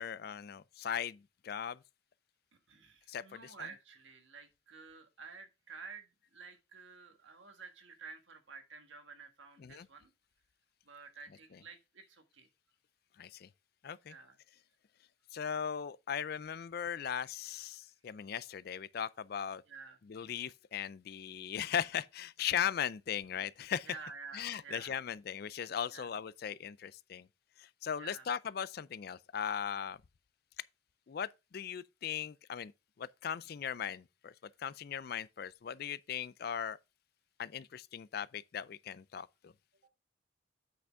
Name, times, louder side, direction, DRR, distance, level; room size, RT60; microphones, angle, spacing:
voice 1, 0.0-1.8 3.1-3.5 9.6-9.9 13.2-13.5 13.8-14.1 15.3-19.6 20.1-23.9 24.3-27.3 27.6-30.0 31.1-32.7 33.0-34.3 34.6-36.8 37.4-39.5, left 8 dB, 50° left, 0.3 m, -38 dB
voice 2, 2.7-10.1 10.8-12.5 14.1-14.4 19.7-20.0 23.8-25.0 25.9-26.1 28.0-28.3, right 5 dB, 70° right, 1.5 m, -51 dB
8.1 x 6.1 x 3.5 m
head